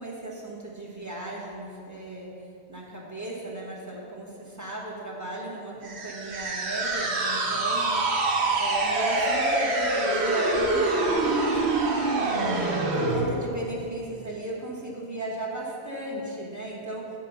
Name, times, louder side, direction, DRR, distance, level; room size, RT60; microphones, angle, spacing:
voice 1, 0.0-2.3 2.7-11.6 12.3-17.1, right 1 dB, 15° right, -3 dB, 1.3 m, -35 dB
sound 1, 5.8-13.3, right 2 dB, 80° right, 1.2 m, -25 dB
8.4 x 5.3 x 5.5 m, 2.6 s
omnidirectional pair, 1.1 m